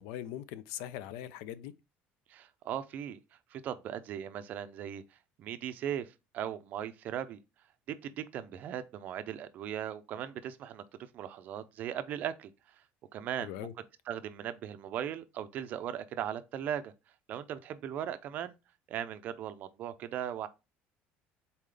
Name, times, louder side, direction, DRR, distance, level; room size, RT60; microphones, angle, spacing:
voice 1, 0.0-1.7 13.4-13.7, left 11 dB, 80° left, 0.4 m, -41 dB
voice 2, 2.3-3.2 3.5-5.0 5.4-7.4 7.9-10.8 11.1-12.5 13.1-13.7 14.1-16.9 17.3-18.6 18.9-20.5, right 10 dB, 40° right, 0.4 m, -38 dB
4.1 x 3.7 x 3.3 m
cardioid pair, 170°, 4 cm